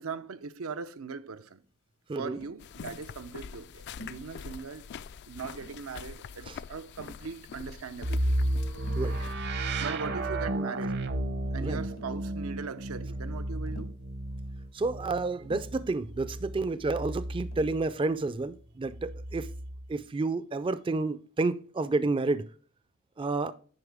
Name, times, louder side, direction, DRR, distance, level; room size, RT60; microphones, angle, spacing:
voice 1, 0.0-1.6 2.2-4.9 5.3-8.3 9.8-11.0 11.5-13.9, right 5 dB, 85° right, 0.7 m, -40 dB
Tap, 2.3-2.7 4.0-4.3 5.4-5.9 7.0-7.7 8.7-9.1 9.8-10.3 11.5-11.6 11.8-12.4 13.7-14.1 15.4-15.9 17.5-17.8, left 2 dB, 75° left, 1.1 m, -50 dB
sound 1, 2.6-9.3, left 6 dB, 55° left, 0.3 m, -45 dB
sound 2, 8.0-17.8 18.9-19.9, right 1 dB, 55° right, 0.8 m, -33 dB
voice 2, 8.9-9.2 11.6-11.8 14.7-19.5 19.9-22.5 23.2-23.5, right 3 dB, 25° right, 0.4 m, -30 dB
9.6 x 5.3 x 3.4 m
head